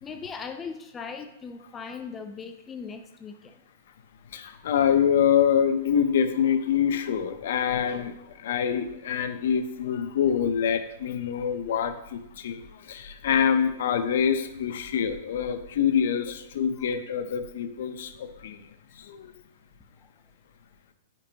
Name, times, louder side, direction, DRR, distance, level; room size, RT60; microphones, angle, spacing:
voice 1, 0.0-3.5 16.8-16.9 20.0-20.1, left 5 dB, 10° left, 7 dB, 0.3 m, -39 dB
voice 2, 4.3-18.6 19.0-19.4, left 8 dB, 60° left, 9 dB, 0.6 m, -25 dB
8.9 x 5.2 x 2.9 m, 0.85 s
supercardioid pair, 175°, 0 cm